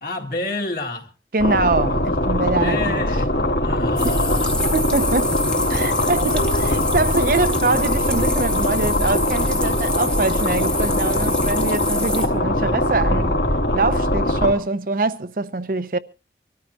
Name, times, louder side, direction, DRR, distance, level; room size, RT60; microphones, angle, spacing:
voice 1, 0.0-1.1 2.6-4.5 6.0-6.9, left 2 dB, 55° left, 2.2 m, -30 dB
voice 2, 1.3-3.0 4.7-5.4 5.7-13.3 13.7-16.0, right 3 dB, 50° right, 0.7 m, -23 dB
sound 1, 1.4-14.5, left 1 dB, 70° left, 2.6 m, -21 dB
sound 2, 4.0-12.3, left 1 dB, 5° left, 1.0 m, -28 dB
25.0 x 13.5 x 2.8 m
head